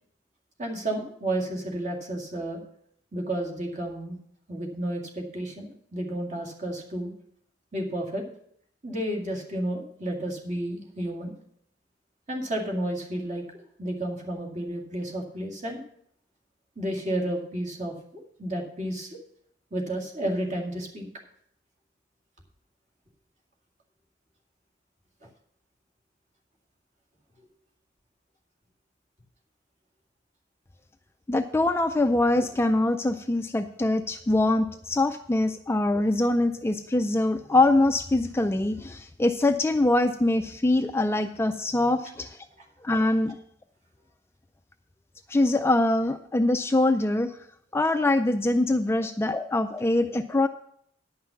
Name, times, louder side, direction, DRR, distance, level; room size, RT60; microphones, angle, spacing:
voice 1, 0.6-2.6 3.1-4.2 4.5-7.1 7.7-8.2 8.8-11.4 12.3-13.4 13.8-15.8 16.8-19.2 19.7-21.1 25.2-25.3, right 1 dB, 40° right, 0 dB, 2.1 m, -31 dB
voice 2, 31.3-42.5 42.8-43.4 45.3-47.4 47.7-50.5, left 2 dB, 15° left, 8 dB, 0.3 m, -23 dB
10.5 x 5.7 x 7.1 m, 0.67 s
head